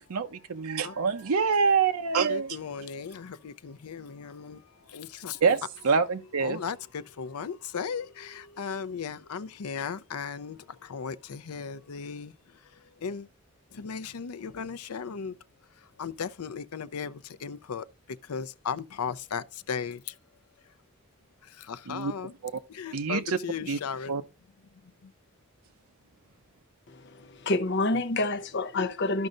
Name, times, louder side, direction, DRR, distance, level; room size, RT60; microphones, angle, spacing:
voice 1, 0.0-2.6 5.4-6.6 21.9-22.1 22.4-22.5 22.9-23.4 23.7-23.8 24.1-24.2, right 5 dB, 80° right, 0.7 m, -26 dB
voice 2, 2.3-5.4 6.4-12.3 12.7-13.3 13.7-15.4 16.0-20.2 21.4-22.3 22.7-24.2 25.0-25.1, left 6 dB, 85° left, 0.5 m, -36 dB
voice 3, 26.9-29.3, left 2 dB, 50° left, 0.8 m, -28 dB
13.0 x 5.4 x 2.5 m
head